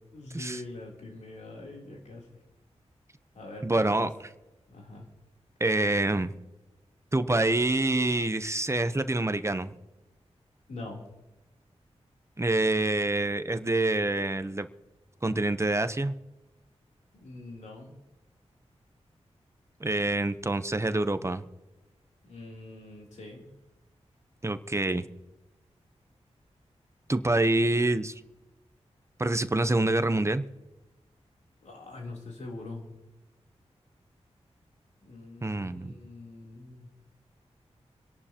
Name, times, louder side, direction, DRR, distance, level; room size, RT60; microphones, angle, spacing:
voice 1, 0.1-2.3 3.3-4.1 4.7-5.1 10.7-11.0 17.1-17.9 22.2-23.4 31.6-32.8 35.0-36.9, left 2 dB, 85° left, -1 dB, 3.4 m, -43 dB
voice 2, 3.6-4.1 5.6-6.3 7.1-9.7 12.4-14.7 15.2-16.1 19.8-21.4 24.4-25.0 27.1-28.1 29.2-30.4 35.4-35.9, right 2 dB, 25° right, 11 dB, 0.8 m, -26 dB
26.5 x 11.0 x 3.0 m, 1.0 s
cardioid pair, 60°, 12 cm